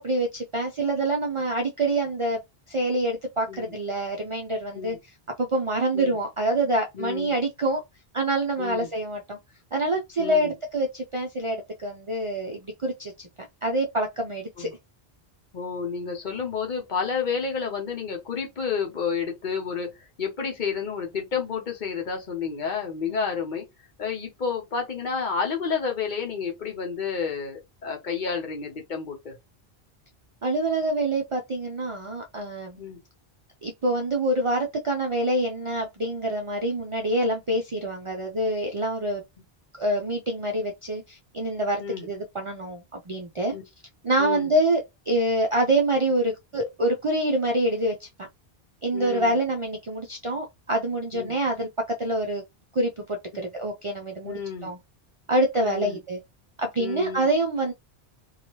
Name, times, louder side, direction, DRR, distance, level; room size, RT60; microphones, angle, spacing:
voice 1, 0.0-2.4 2.7-7.8 8.1-9.4 9.7-13.3 13.6-14.7 23.1-23.2 30.4-32.8 33.6-39.2 39.8-43.5 44.0-44.8 45.1-48.1 48.8-51.7 52.0-52.4 52.7-54.8 55.3-56.2 56.6-57.7, right 1 dB, 45° right, 0.4 m, -26 dB
voice 2, 6.9-7.4 8.6-8.9 10.2-10.5 14.6-14.7 15.5-23.6 24.0-29.4 32.8-33.0 41.8-42.1 43.5-43.6 44.2-44.5 48.9-49.4 51.1-51.3 53.3-53.5 54.2-54.7 55.6-56.0 56.8-57.3, left 6 dB, 50° left, 0.9 m, -30 dB
2.8 x 2.3 x 2.9 m
omnidirectional pair, 1.1 m